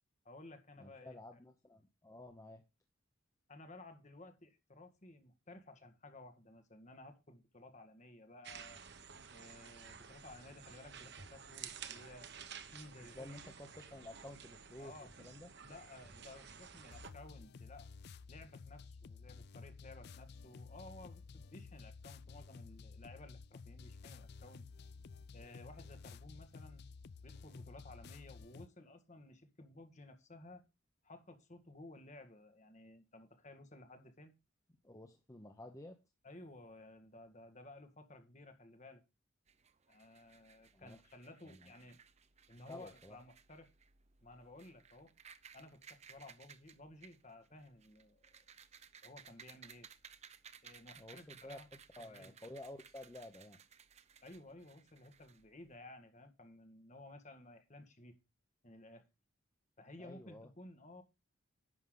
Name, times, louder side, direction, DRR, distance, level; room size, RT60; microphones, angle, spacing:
voice 1, 0.3-1.2 3.5-8.8 9.3-12.3 12.7-13.5 14.8-15.1 15.6-17.9 18.3-24.7 25.3-26.8 27.2-30.6 31.0-34.3 36.2-39.0 39.9-42.0 42.5-43.7 44.2-45.1 45.5-48.2 49.0-49.9 50.6-51.7 52.0-52.3 54.2-58.1 58.6-59.0 59.8-61.0, left 2 dB, 35° left, 1.8 m, -55 dB
voice 2, 0.8-2.6 13.0-14.9 15.2-15.5 34.8-36.0 40.7-41.0 41.5-41.7 42.7-43.2 51.0-51.6 52.0-53.6 60.0-60.5, left 1 dB, 15° left, 0.9 m, -52 dB
sound 1, 8.4-17.1, right 7 dB, 55° right, 1.1 m, -52 dB
sound 2, 16.9-28.7, left 4 dB, 50° left, 0.4 m, -53 dB
sound 3, 39.5-55.7, right 7 dB, 30° right, 0.7 m, -60 dB
11.0 x 7.1 x 3.9 m
head